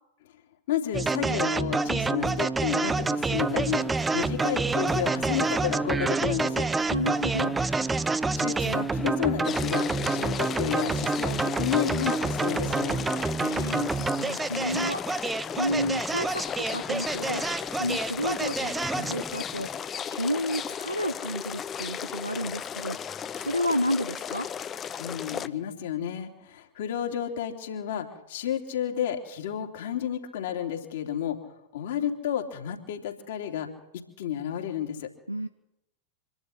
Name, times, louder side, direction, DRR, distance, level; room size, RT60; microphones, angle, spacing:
voice 1, 0.7-3.8 4.1-6.6 8.3-13.1 25.0-31.4 31.7-33.7 34.2-35.1, left 10 dB, 55° left, 3 dB, 3.2 m, -31 dB
sound 1, 0.9-19.2, right 3 dB, 10° right, 0.8 m, -28 dB
sound 2, 2.6-19.9, left 2 dB, 5° left, 1.3 m, -41 dB
voice 2, 6.9-7.6 13.4-17.4 17.7-19.7 20.1-24.5 35.3-35.5, equal, 90° left, 6 dB, 0.9 m, -31 dB
sound 3, 9.4-25.5, left 8 dB, 25° left, 0.8 m, -35 dB
25.5 x 12.0 x 9.8 m, 0.89 s
figure-of-eight pair, 90°, 0 cm